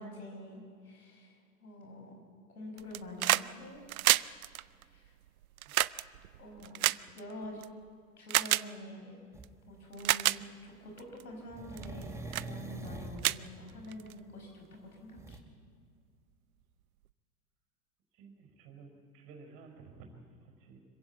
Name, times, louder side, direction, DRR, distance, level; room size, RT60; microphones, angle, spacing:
voice 1, 0.0-2.2 2.5-3.8 4.8-5.1 6.4-6.8 7.1-7.6 8.2-9.2 9.6-15.4, left 1 dB, 80° left, 2 dB, 5.4 m, -47 dB
sound 1, 2.8-3.5 3.8-7.7 8.3-8.7 9.4-9.5 9.9-10.4 11.0-11.2 11.8-12.0 12.3-12.5 12.9-13.0 13.2-14.1 15.3-15.4, right 14 dB, 70° right, 0.6 m, -29 dB
sound 2, 9.3-9.5 11.5-13.3 15.2-15.4, right 2 dB, 5° right, 1.6 m, -43 dB
voice 2, 18.1-20.8, right 4 dB, 45° right, 4 dB, 5.0 m, -53 dB
25.5 x 16.0 x 8.5 m, 2.2 s
figure-of-eight pair, 90°, 44 cm